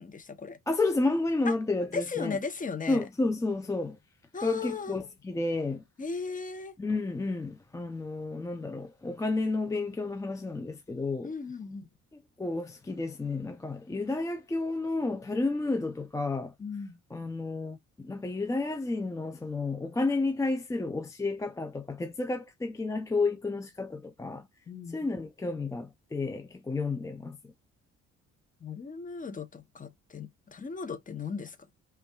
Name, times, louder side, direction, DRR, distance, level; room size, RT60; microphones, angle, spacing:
voice 1, 0.0-0.6 1.4-1.5 1.9-3.0 4.3-5.0 6.0-6.7 11.2-11.9 16.6-17.0 24.7-25.0 28.6-31.6, left 5 dB, 25° left, 0.8 m, -36 dB
voice 2, 0.7-2.4 2.9-4.0 4.4-5.8 6.8-11.3 12.4-16.5 17.1-24.5 24.9-27.5, left 3 dB, 10° left, 0.4 m, -31 dB
5.3 x 2.3 x 2.3 m
cardioid pair, 90°, 30 cm